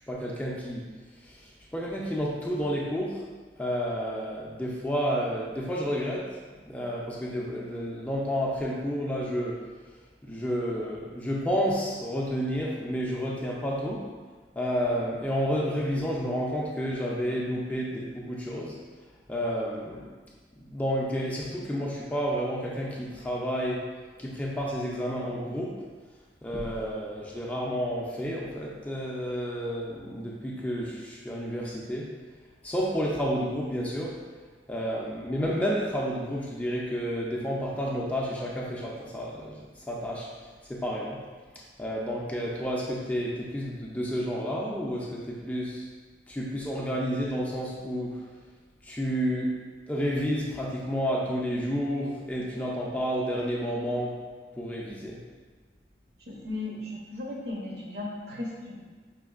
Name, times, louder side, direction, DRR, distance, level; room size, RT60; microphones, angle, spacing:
voice 1, 0.1-0.9 1.2-3.2 3.6-6.3 6.7-9.6 10.2-14.0 14.6-18.8 19.3-20.0 20.6-23.8 24.2-25.8 26.4-32.1 32.6-34.1 34.7-40.3 40.7-41.2 41.8-45.9 46.3-48.2 48.8-49.5 49.9-54.2 54.5-55.2, equal, 10° left, -4 dB, 0.4 m, -30 dB
voice 2, 56.2-58.8, left 2 dB, 65° right, -3 dB, 0.8 m, -36 dB
5.1 x 2.5 x 2.4 m, 1.4 s
head